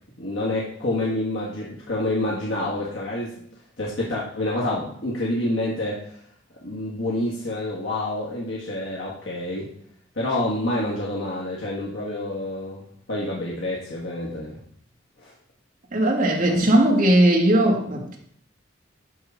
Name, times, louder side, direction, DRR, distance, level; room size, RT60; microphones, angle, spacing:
voice 1, 0.2-3.3 3.8-6.1 6.6-9.7 10.2-14.6 15.2-15.3 16.4-16.6, left 1 dB, 85° left, -5 dB, 1.8 m, -28 dB
voice 2, 15.9-18.2, right 1 dB, 45° right, 0 dB, 1.9 m, -18 dB
11.5 x 3.9 x 5.7 m, 0.65 s
head